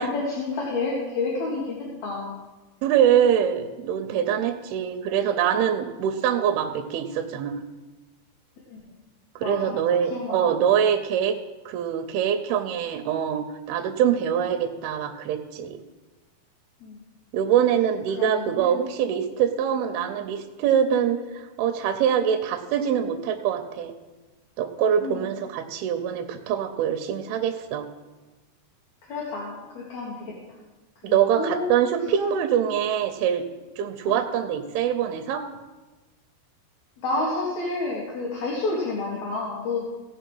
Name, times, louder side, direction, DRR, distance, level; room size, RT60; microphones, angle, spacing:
voice 1, 0.0-2.4 8.7-8.8 9.4-9.8 10.1-10.4 16.8-17.0 18.2-18.9 25.0-25.2 29.0-30.3 31.1-31.8 34.0-34.2 37.0-39.8, left 3 dB, 55° left, -4 dB, 2.4 m, -30 dB
voice 2, 2.8-7.6 9.4-11.3 11.7-15.8 17.3-23.9 24.6-27.9 31.0-33.4 33.8-35.5, right 9 dB, 80° right, 7 dB, 2.4 m, -24 dB
17.0 x 5.9 x 5.5 m, 1.2 s
omnidirectional pair, 4.9 m